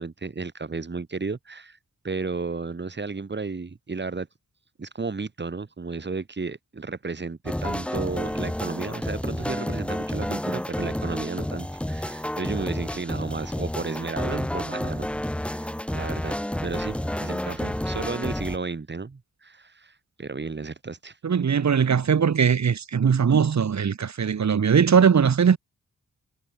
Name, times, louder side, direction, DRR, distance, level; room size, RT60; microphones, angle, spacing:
voice 1, 0.0-1.8 2.0-4.3 4.8-15.1 15.3-21.2, right 4 dB, 35° right, 2.5 m, -33 dB
sound 1, 7.5-18.6, left 1 dB, 5° left, 0.7 m, -30 dB
voice 2, 21.2-25.6, right 7 dB, 60° right, 2.1 m, -20 dB
wide cardioid pair, 95°, 31 cm